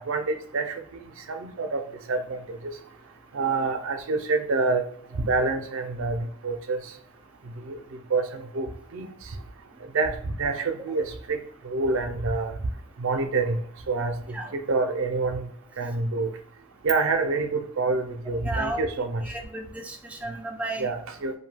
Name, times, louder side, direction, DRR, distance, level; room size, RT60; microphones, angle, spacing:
voice 1, 0.0-1.8 2.1-2.6 3.3-4.8 5.1-6.8 7.6-7.8 8.1-8.7 8.9-9.1 9.9-10.1 10.4-11.4 11.6-12.5 13.0-13.6 13.9-14.1 14.5-15.5 15.8-16.3 16.8-19.2 20.8-21.3, right 3 dB, 65° right, 5 dB, 0.5 m, -27 dB
voice 2, 18.4-18.8 19.2-20.9, right 1 dB, 5° right, 1 dB, 0.3 m, -33 dB
2.6 x 2.2 x 3.2 m, 0.63 s
head